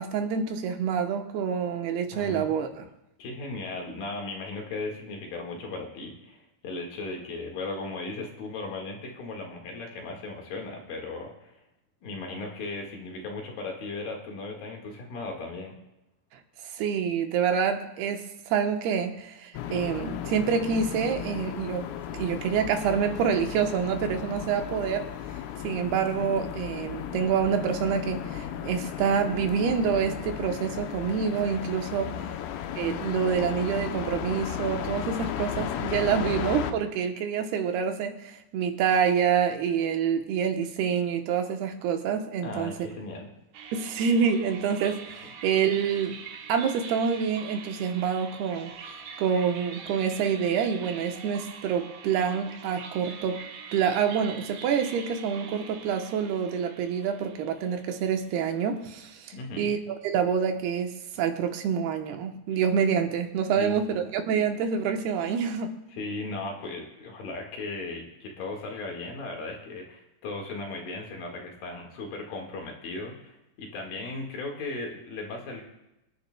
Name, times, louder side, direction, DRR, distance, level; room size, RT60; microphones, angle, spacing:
voice 1, 0.0-2.9 16.7-21.8 22.1-25.1 25.6-32.1 32.8-42.7 43.7-46.2 46.5-48.7 49.2-53.4 53.7-59.8 60.0-65.7, right 7 dB, 90° right, 5 dB, 3.0 m, -27 dB
voice 2, 2.1-2.5 3.2-11.6 12.0-15.8 32.2-32.4 42.4-43.3 59.3-59.7 62.5-62.6 63.6-64.0 65.9-75.6, left 3 dB, 65° left, 1 dB, 3.4 m, -37 dB
sound 1, 19.5-36.7, left 9 dB, 85° left, 2.6 m, -35 dB
sound 2, 43.5-58.8, right 6 dB, 70° right, 2.3 m, -44 dB
25.5 x 10.0 x 2.2 m, 0.91 s
omnidirectional pair, 4.4 m